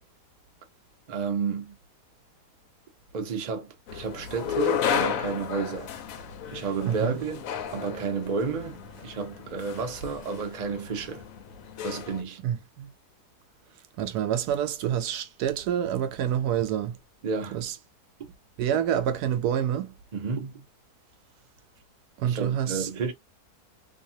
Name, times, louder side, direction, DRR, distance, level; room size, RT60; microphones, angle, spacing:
voice 1, 1.1-1.8 3.1-5.9 6.5-7.4 7.7-11.2 11.8-12.4 17.2-17.6 20.1-20.7 22.2-23.1, right 5 dB, 50° right, 0.5 m, -31 dB
sound 1, 3.9-12.2, left 8 dB, 70° left, 0.9 m, -33 dB
voice 2, 6.8-7.2 12.4-12.9 14.0-17.0 17.5-17.7 18.6-19.9 22.2-22.9, right 10 dB, 80° right, 1.1 m, -27 dB
2.7 x 2.3 x 2.7 m
omnidirectional pair, 1.7 m